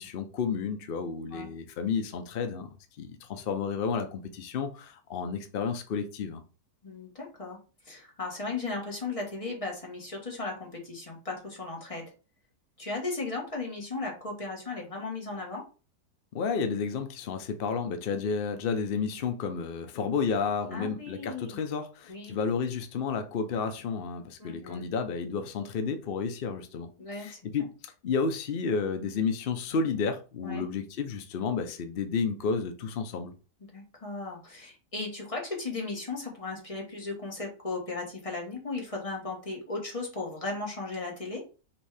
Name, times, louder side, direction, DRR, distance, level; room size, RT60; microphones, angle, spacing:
voice 1, 0.0-6.4 16.3-27.7 28.0-33.3, left 5 dB, 75° left, 0.5 m, -31 dB
voice 2, 6.8-7.6 7.8-12.0 12.8-15.6 20.7-21.6 22.1-22.4 24.4-24.8 27.0-27.4 30.4-30.6 33.7-41.4, left 3 dB, 20° left, 1.3 m, -36 dB
5.6 x 2.7 x 3.3 m
omnidirectional pair, 1.8 m